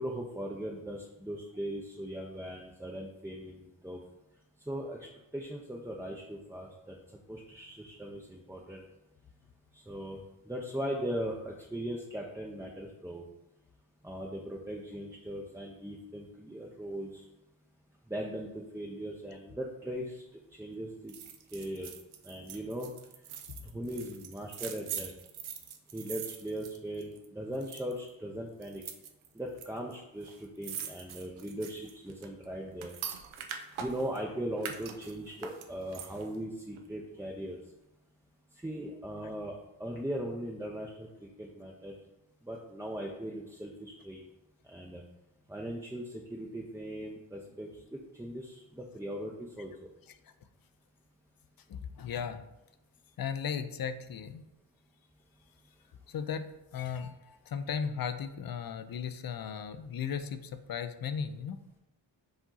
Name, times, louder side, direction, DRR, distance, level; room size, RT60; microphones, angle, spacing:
voice 1, 0.0-4.0 4.7-5.0 5.3-6.9 7.3-8.8 9.7-10.2 10.5-13.3 14.0-17.2 18.1-20.2 20.6-21.1 21.5-21.9 22.2-22.9 23.7-25.1 25.9-28.8 29.3-32.9 33.8-37.6 38.6-41.1 41.4-41.9 42.4-44.2 44.7-45.0 45.5-47.7 48.2-49.7, right 1 dB, 5° right, -1 dB, 0.5 m, -39 dB
sound 1, 21.1-27.3 27.5-28.1 28.6-29.7 29.9-30.0 30.2-34.2 34.6-36.4 36.7-36.8, right 8 dB, 80° right, 0.6 m, -43 dB
voice 2, 51.7-52.5 53.2-54.4 56.1-61.6, left 7 dB, 50° left, 11 dB, 0.5 m, -36 dB
4.9 x 2.7 x 3.9 m, 0.91 s
cardioid pair, 55°, 48 cm